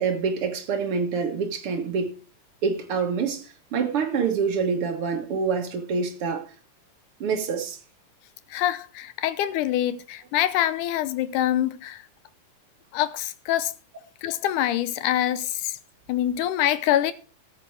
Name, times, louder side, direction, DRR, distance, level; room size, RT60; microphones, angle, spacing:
voice 1, 0.0-2.1 2.6-6.4 7.2-7.8, right 5 dB, 50° right, 1.9 m, -26 dB
voice 2, 8.5-12.0 12.9-13.7 14.2-15.8 16.1-17.1, left 12 dB, 75° left, 1.9 m, -25 dB
13.5 x 7.7 x 4.8 m
omnidirectional pair, 4.3 m